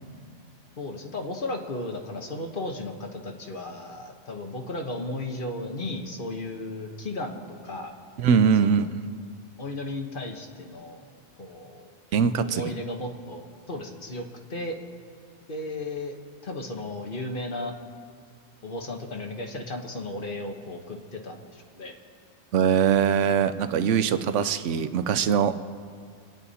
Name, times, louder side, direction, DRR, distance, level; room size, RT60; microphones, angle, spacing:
voice 1, 0.8-7.9 8.6-8.9 9.6-11.0 11.4-11.9 12.4-14.8 15.5-16.1 16.4-17.7 18.6-22.0, left 2 dB, 50° left, 3 dB, 1.4 m, -35 dB
voice 2, 8.2-8.8 12.1-12.6 22.5-25.6, right 7 dB, 90° right, 11 dB, 1.0 m, -22 dB
25.0 x 9.2 x 4.2 m, 2.1 s
omnidirectional pair, 1.2 m